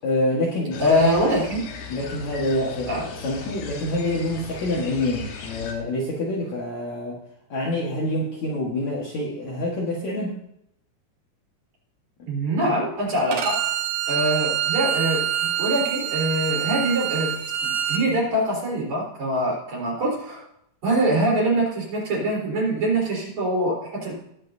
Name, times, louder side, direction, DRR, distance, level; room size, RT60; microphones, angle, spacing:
voice 1, 0.0-1.1 1.9-7.2 7.5-10.4, left 1 dB, 55° left, -3 dB, 2.3 m, -26 dB
sound 1, 0.7-5.7, left 6 dB, 85° left, 3.6 m, -38 dB
voice 2, 0.8-1.6 2.9-3.0 12.3-13.6 14.1-17.3 17.6-20.4 20.8-24.1, right 1 dB, 45° right, -4 dB, 4.9 m, -24 dB
Bowed string instrument, 13.3-18.0, right 10 dB, 70° right, 1.7 m, -26 dB
19.0 x 8.2 x 2.7 m, 0.76 s
omnidirectional pair, 4.8 m